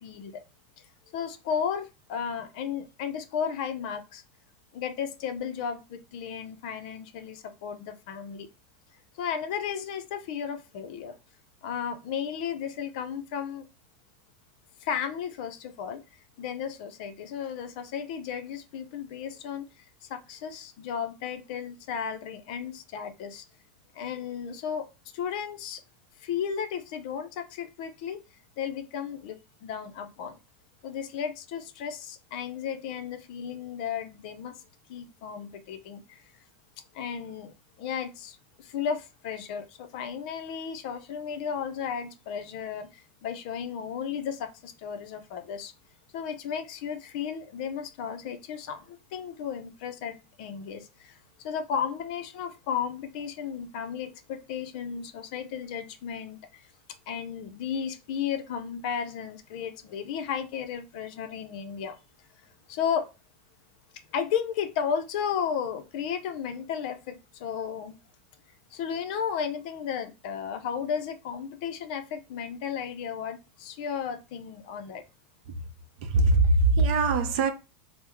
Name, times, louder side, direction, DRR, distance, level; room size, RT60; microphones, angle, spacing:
voice 1, 0.0-0.4 0.8-0.9 1.1-4.2 4.7-8.5 9.2-11.1 11.6-13.7 14.8-19.7 20.0-23.4 23.9-25.8 26.2-28.2 28.6-29.4 29.6-30.4 30.8-34.6 34.9-36.2 36.9-45.7 46.1-56.6 57.1-61.9 62.7-63.1 64.1-67.9 68.7-75.0, left 7 dB, 50° left, 0.5 m, -34 dB
voice 2, 76.0-77.5, right 3 dB, 45° right, 0.5 m, -22 dB
3.4 x 2.0 x 3.0 m
supercardioid pair, 175°, 6 cm